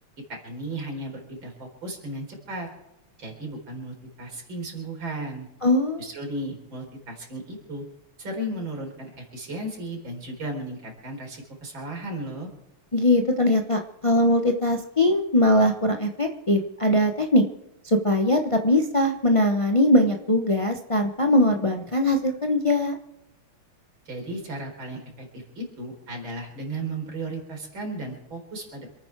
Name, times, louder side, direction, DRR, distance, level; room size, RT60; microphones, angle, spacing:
voice 1, 0.3-2.7 3.2-5.5 6.0-7.8 8.2-12.5 24.1-28.9, right 1 dB, 60° right, 1 dB, 4.9 m, -35 dB
voice 2, 5.6-6.1 12.9-17.4 17.8-22.9, left 1 dB, 40° left, 3 dB, 0.4 m, -21 dB
28.0 x 9.3 x 4.6 m, 0.91 s
omnidirectional pair, 2.4 m